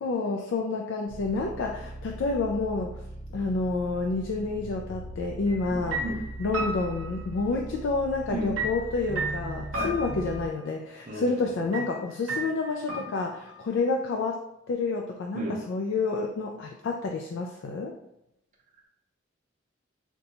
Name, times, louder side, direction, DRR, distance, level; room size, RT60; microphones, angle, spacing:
voice 1, 0.0-3.0 3.3-6.0 6.4-14.4 14.7-17.9, left 3 dB, 65° left, 1 dB, 0.3 m, -29 dB
sound 1, 1.1-10.5, right 1 dB, 50° left, 0.9 m, -40 dB
sound 2, 5.5-5.7 5.9-7.8 8.6-10.6 11.7-11.9 12.3-13.6, right 2 dB, 80° right, 0.7 m, -34 dB
voice 2, 6.0-6.2 8.3-8.5 9.7-9.9 11.1-11.3 15.3-15.6, right 1 dB, 40° right, -2 dB, 0.5 m, -32 dB
2.7 x 2.2 x 4.0 m, 0.79 s
head